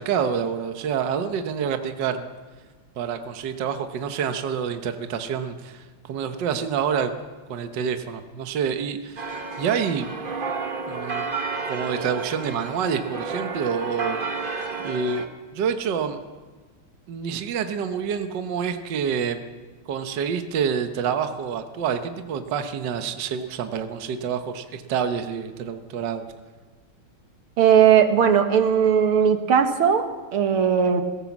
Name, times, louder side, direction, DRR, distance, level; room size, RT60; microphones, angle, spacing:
voice 1, 0.0-2.2 3.0-7.1 7.5-10.1 10.9-11.2 11.6-14.2 14.8-15.2 15.5-16.2 17.1-19.4 19.9-26.3, right 7 dB, 60° right, 7 dB, 1.6 m, -27 dB
sound 1, 9.2-15.3, right 4 dB, 30° right, 1.2 m, -31 dB
voice 2, 27.6-31.0, right 8 dB, 80° right, 6 dB, 2.3 m, -18 dB
20.5 x 17.5 x 7.3 m, 1.4 s
omnidirectional pair, 2.3 m